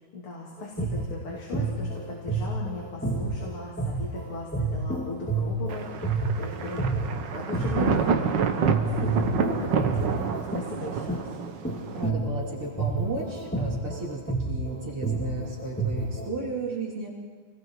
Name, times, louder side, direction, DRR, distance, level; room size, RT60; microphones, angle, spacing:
voice 1, 0.1-11.3, left 2 dB, 80° left, -4 dB, 3.8 m, -38 dB
sound 1, 0.6-8.3 8.6-16.3, right 2 dB, 5° left, 2.5 m, -29 dB
Thunder, 5.7-12.1, right 6 dB, 60° right, 1.6 m, -28 dB
voice 2, 11.9-17.1, right 3 dB, 85° right, -7 dB, 3.9 m, -34 dB
28.0 x 19.5 x 4.8 m, 1.5 s
omnidirectional pair, 2.3 m